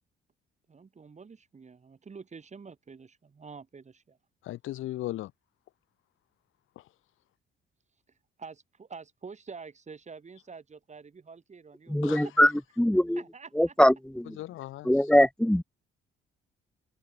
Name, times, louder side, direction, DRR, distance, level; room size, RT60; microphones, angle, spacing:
voice 1, 0.7-4.2 8.4-12.3 13.2-13.7, right 5 dB, 35° right, 6.3 m, -47 dB
voice 2, 4.4-5.3 6.8-6.9 12.0-12.5 14.4-15.1, left 15 dB, 85° left, 2.3 m, -38 dB
voice 3, 11.9-12.5 12.8-13.2 13.5-14.4 14.8-15.6, left 1 dB, 5° left, 1.6 m, -22 dB
cardioid pair, 90°, 20 cm